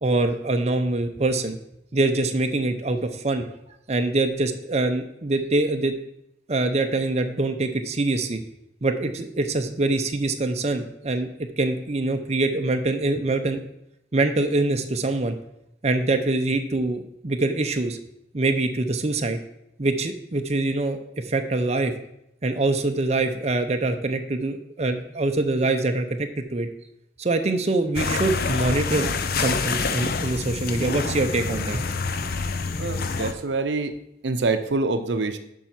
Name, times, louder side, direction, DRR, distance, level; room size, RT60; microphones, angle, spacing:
voice 1, 0.0-1.6 1.9-3.4 3.9-5.9 6.5-8.4 8.8-11.3 11.6-13.6 14.1-15.3 15.8-18.0 18.3-19.4 19.8-21.9 22.4-26.7 27.2-29.1 29.4-31.8, right 2 dB, 35° right, 0.7 m, -24 dB
sound 1, 28.0-33.3, left 4 dB, 55° left, 0.6 m, -27 dB
voice 2, 32.8-33.9 34.2-35.4, right 3 dB, 85° right, 0.6 m, -25 dB
7.3 x 5.5 x 5.8 m
head